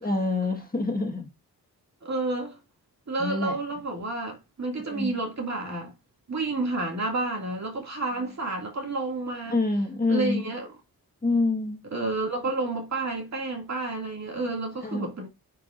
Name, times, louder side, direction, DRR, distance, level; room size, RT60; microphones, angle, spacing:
voice 1, 0.0-1.2 3.2-3.5 4.9-5.1 9.5-10.4 11.2-11.8 14.8-15.1, left 2 dB, 25° left, 1.4 m, -26 dB
voice 2, 2.0-2.6 3.1-5.9 6.3-9.6 10.1-10.8 11.8-15.3, right 2 dB, 45° right, 2.2 m, -30 dB
9.2 x 4.8 x 2.5 m
wide cardioid pair, 115°, 39 cm